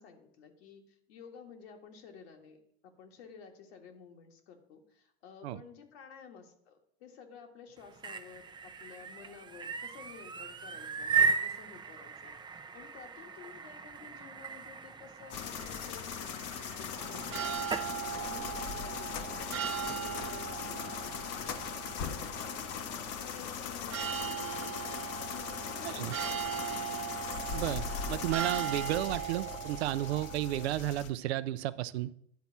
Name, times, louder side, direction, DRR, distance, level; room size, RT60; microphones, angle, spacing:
voice 1, 0.0-26.8, left 6 dB, 70° left, 3 dB, 1.6 m, -53 dB
sound 1, 7.8-17.9, right 5 dB, 15° right, 0.5 m, -36 dB
sound 2, 15.3-31.1, left 7 dB, 45° left, 0.9 m, -39 dB
sound 3, 17.0-30.7, right 9 dB, 40° right, 0.8 m, -39 dB
voice 2, 27.5-32.1, right 14 dB, 75° right, 15 dB, 0.5 m, -33 dB
10.5 x 4.1 x 5.8 m, 0.69 s
hypercardioid pair, 85°, 33 cm